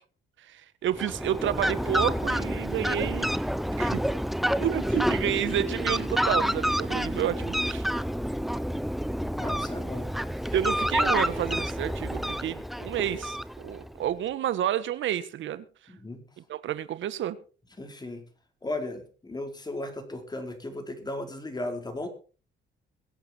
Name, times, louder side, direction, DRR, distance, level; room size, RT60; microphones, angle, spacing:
voice 1, 0.5-3.3 3.8-4.0 4.6-7.9 10.5-15.6 16.5-17.4, right 11 dB, 75° right, 1.4 m, -30 dB
Fowl, 0.9-13.9, equal, ahead, 0.7 m, -28 dB
voice 2, 9.3-10.1 10.4-10.5 15.9-16.2 17.8-18.2 18.6-22.1, left 2 dB, 20° left, 4.2 m, -36 dB
22.5 x 8.3 x 4.5 m
cardioid pair, 90°, 20 cm